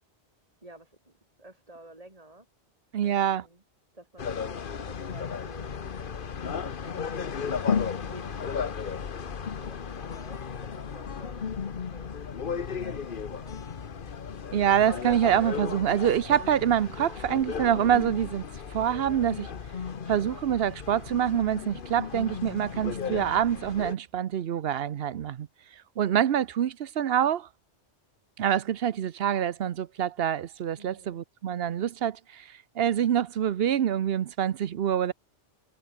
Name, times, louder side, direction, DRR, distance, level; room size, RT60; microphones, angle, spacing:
voice 1, 0.6-2.5 3.0-3.6 3.9-5.8 6.6-12.1 12.5-13.7 30.8-31.2, right 1 dB, 30° right, 5.2 m, -52 dB
voice 2, 2.9-3.4 14.5-19.5 20.1-25.5 26.0-27.5 28.4-35.1, right 9 dB, 60° right, 0.9 m, -26 dB
sound 1, 4.2-23.9, left 6 dB, 50° left, 1.2 m, -35 dB
omnidirectional pair, 1.2 m